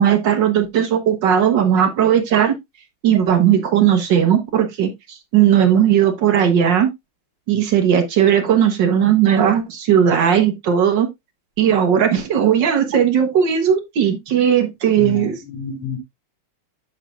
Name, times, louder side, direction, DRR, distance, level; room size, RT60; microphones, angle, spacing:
voice 1, 0.0-2.5 3.0-4.9 5.3-6.9 7.5-11.1 11.6-15.4, right 9 dB, 65° right, 1.6 m, -16 dB
voice 2, 15.0-16.0, left 6 dB, 90° left, 3.6 m, -29 dB
7.2 x 7.1 x 2.3 m
omnidirectional pair, 2.3 m